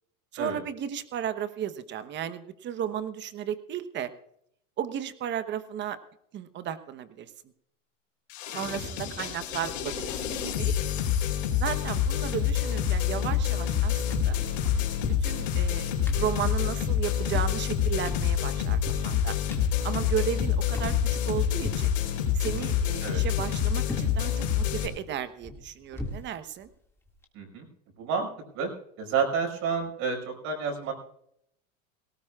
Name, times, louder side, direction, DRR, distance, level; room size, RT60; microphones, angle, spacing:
voice 1, 0.3-4.1 4.8-6.0 6.3-7.3 8.5-10.7 11.5-14.4 15.0-15.9 16.1-19.3 19.8-21.9 22.3-26.7, right 9 dB, 30° right, 12 dB, 1.0 m, -34 dB
sound 1, 8.3-24.9, left 9 dB, 75° left, 4.0 m, -27 dB
sound 2, 9.2-9.5 9.9-10.7 11.0-11.1 11.3-12.2 12.5-13.8 14.1-21.9 22.4-23.6 23.9-24.3 24.7-26.3 26.6-26.7 27.1-27.2, left 2 dB, 5° left, 2.0 m, -39 dB
voice 2, 27.3-27.7 28.0-28.3 28.5-28.7 29.0-30.9, right 5 dB, 45° right, 1 dB, 5.5 m, -30 dB
18.5 x 18.0 x 2.4 m, 0.72 s
supercardioid pair, 140°, 38 cm